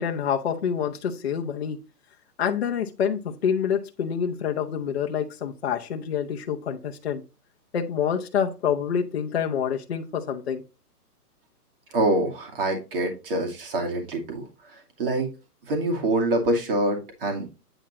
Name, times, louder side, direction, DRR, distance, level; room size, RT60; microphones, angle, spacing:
voice 1, 0.0-1.8 2.4-7.2 7.7-10.6, left 7 dB, 40° left, 0.8 m, -27 dB
voice 2, 11.9-14.5 15.0-15.3 15.7-17.5, right 1 dB, 35° right, 2.4 m, -25 dB
8.9 x 4.3 x 4.2 m
hypercardioid pair, 175°, 47 cm